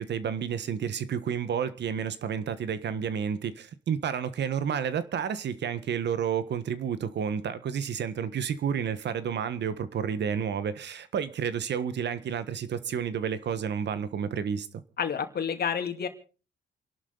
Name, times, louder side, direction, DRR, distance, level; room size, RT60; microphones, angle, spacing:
voice 1, 0.0-14.8, right 7 dB, 60° right, 1.4 m, -30 dB
voice 2, 15.0-16.1, left 7 dB, 50° left, 2.5 m, -29 dB
28.5 x 11.5 x 4.0 m
cardioid pair, 90°, 20 cm